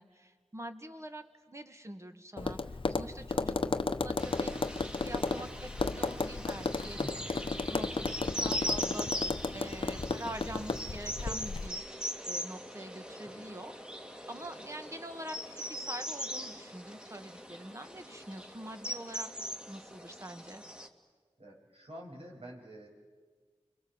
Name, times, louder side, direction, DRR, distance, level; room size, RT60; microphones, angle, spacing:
voice 1, 0.0-2.6 3.0-3.6 4.0-4.5 4.8-11.8 12.3-13.7 14.3-20.6, right 1 dB, 25° right, 7 dB, 2.1 m, -45 dB
Tap, 2.4-11.7, left 3 dB, 50° left, 0.9 m, -34 dB
sound 1, 4.2-20.9, equal, 10° right, 2.3 m, -41 dB
voice 2, 7.0-7.4 13.2-13.5 21.4-22.9, equal, 70° right, -2 dB, 6.9 m, -48 dB
29.5 x 23.5 x 7.3 m, 1.5 s
cardioid pair, 45°, 11 cm